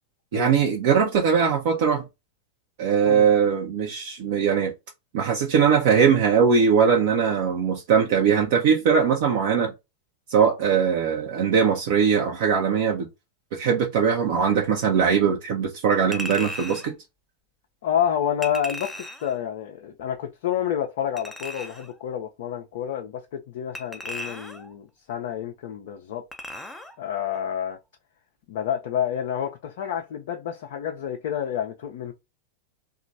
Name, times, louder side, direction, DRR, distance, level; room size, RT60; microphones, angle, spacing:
voice 1, 0.3-2.0 2.8-4.7 5.1-9.7 10.3-13.1 13.5-16.9, right 7 dB, 50° right, 0.7 m, -21 dB
Chink clink, 16.1-16.9 18.4-19.3 21.2-21.9 23.7-24.7 26.3-26.9 27.3-27.4, left 1 dB, 5° left, 0.5 m, -36 dB
voice 2, 17.8-26.2 27.0-27.8 28.5-32.1, left 9 dB, 55° left, 0.5 m, -29 dB
2.9 x 2.4 x 2.5 m
figure-of-eight pair, 90°, 0 cm